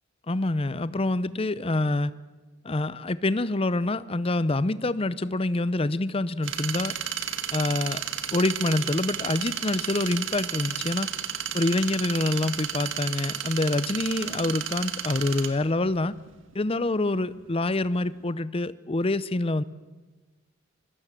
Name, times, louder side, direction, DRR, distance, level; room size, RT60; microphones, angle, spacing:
voice 1, 0.3-2.1 2.6-6.9 7.5-8.0 8.3-11.1 11.5-16.1 16.5-19.6, left 2 dB, 25° left, 17 dB, 0.6 m, -26 dB
sound 1, 6.4-16.3 16.5-16.6 16.9-17.0 17.5-18.3, right 9 dB, 65° right, 1.6 m, -32 dB
26.0 x 17.5 x 7.5 m, 1.3 s
head